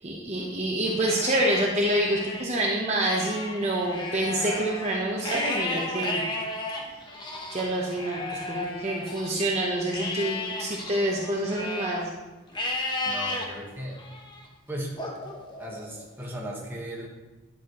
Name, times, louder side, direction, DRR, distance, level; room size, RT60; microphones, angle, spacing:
voice 1, 0.0-6.2 7.5-12.1, right 1 dB, 35° right, -3 dB, 0.9 m, -27 dB
Livestock farm animals working animals, 0.9-2.5 2.9-9.5 9.9-12.0 12.5-13.5 14.0-14.4 15.0-16.1, left 2 dB, 20° left, 1.0 m, -34 dB
voice 2, 13.0-14.0 14.7-15.3 15.6-17.1, equal, 10° right, -3 dB, 1.4 m, -37 dB
10.5 x 6.5 x 3.1 m, 1.2 s
head